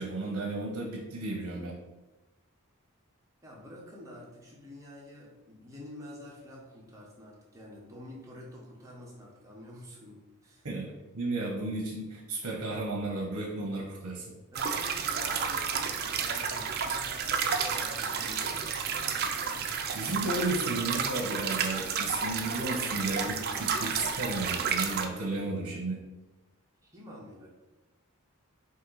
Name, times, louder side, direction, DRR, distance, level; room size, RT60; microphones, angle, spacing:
voice 1, 0.0-1.8 10.6-14.3 19.9-26.0, right 2 dB, 65° right, -1 dB, 0.8 m, -34 dB
voice 2, 3.4-10.2 10.4-10.7 14.5-18.8 26.8-27.5, left 1 dB, 15° right, -4 dB, 0.9 m, -48 dB
sound 1, 14.6-25.1, right 6 dB, 45° right, 0.4 m, -31 dB
4.3 x 2.6 x 3.9 m, 1.1 s
head